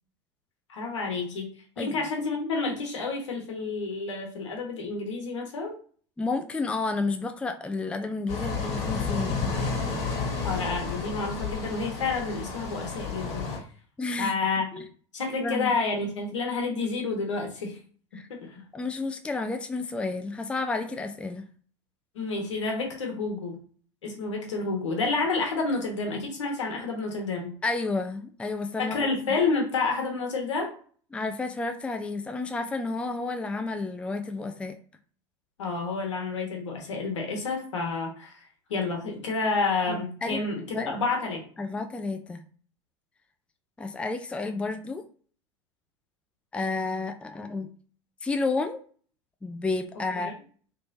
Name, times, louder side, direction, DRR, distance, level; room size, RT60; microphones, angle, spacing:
voice 1, 0.7-1.5 1.8-5.8 10.4-13.6 14.2-14.9 15.1-17.8 18.4-18.6 22.1-23.6 24.0-27.5 28.8-30.7 35.6-40.6 40.9-41.4 50.2-50.3, left 3 dB, 75° left, 2 dB, 1.1 m, -29 dB
voice 2, 6.2-9.4 14.0-14.3 14.7-14.8 15.4-15.7 18.1-18.3 18.7-21.4 27.6-29.0 31.1-34.7 39.9-40.5 40.7-40.9 41.6-42.4 43.8-45.0 46.5-47.7 48.2-48.8 49.4-50.3, left 3 dB, 5° left, 6 dB, 0.4 m, -31 dB
sound 1, 8.3-13.6, left 4 dB, 45° left, 1.5 m, -31 dB
3.2 x 3.1 x 2.6 m, 0.43 s
figure-of-eight pair, 80°, 15 cm